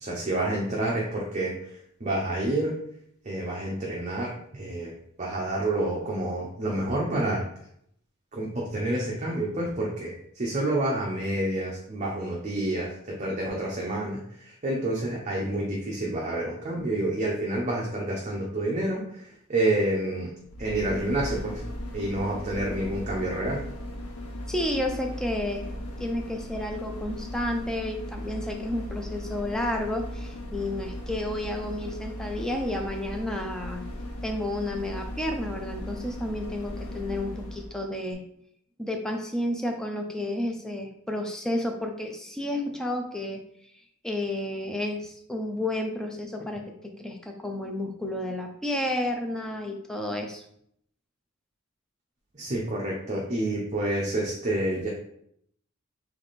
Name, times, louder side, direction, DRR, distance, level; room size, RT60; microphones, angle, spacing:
voice 1, 0.0-2.7 3.2-4.9 5.2-7.4 8.3-19.2 19.5-20.3 20.6-21.6 21.9-23.6 52.3-54.9, right 1 dB, 30° right, -3 dB, 0.7 m, -28 dB
sound 1, 20.4-37.7 38.1-38.2, left 1 dB, 85° left, 0.7 m, -37 dB
voice 2, 24.5-25.7 26.0-33.8 34.2-38.2 38.8-43.4 44.0-50.4, left 1 dB, 5° left, 2 dB, 0.4 m, -31 dB
3.5 x 3.3 x 4.0 m, 0.70 s
head